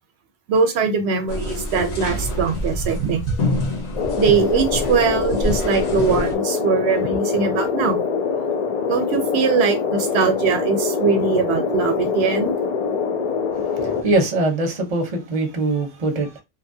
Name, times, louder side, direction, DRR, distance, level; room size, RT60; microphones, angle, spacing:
voice 1, 0.5-3.7 4.2-8.0 8.9-12.5, right 5 dB, 80° right, 0.8 m, -21 dB
sound 1, 1.3-6.3, left 1 dB, 75° left, 1.1 m, -27 dB
sound 2, 4.0-14.0, left 5 dB, 55° left, 0.4 m, -24 dB
voice 2, 13.5-16.4, right 2 dB, 40° right, 0.7 m, -22 dB
2.8 x 2.2 x 2.6 m
omnidirectional pair, 1.1 m